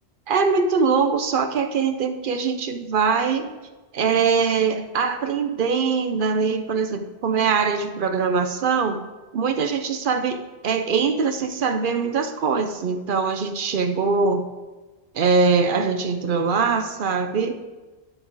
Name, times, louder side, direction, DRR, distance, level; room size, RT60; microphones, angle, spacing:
voice 1, 0.3-3.5 3.9-9.0 9.3-14.5 15.1-17.6, right 5 dB, 60° right, 7 dB, 0.7 m, -22 dB
9.4 x 5.5 x 4.4 m, 1.2 s
omnidirectional pair, 1.1 m